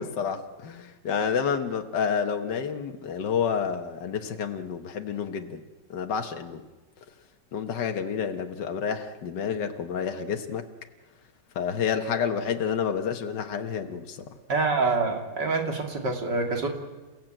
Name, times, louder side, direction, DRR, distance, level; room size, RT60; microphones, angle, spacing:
voice 1, 0.0-5.6 5.9-6.6 7.5-10.7 11.6-14.2, left 7 dB, 75° left, 5 dB, 1.9 m, -29 dB
voice 2, 14.5-16.7, right 3 dB, 75° right, 3 dB, 3.1 m, -26 dB
29.0 x 16.0 x 9.0 m, 1.2 s
omnidirectional pair, 1.9 m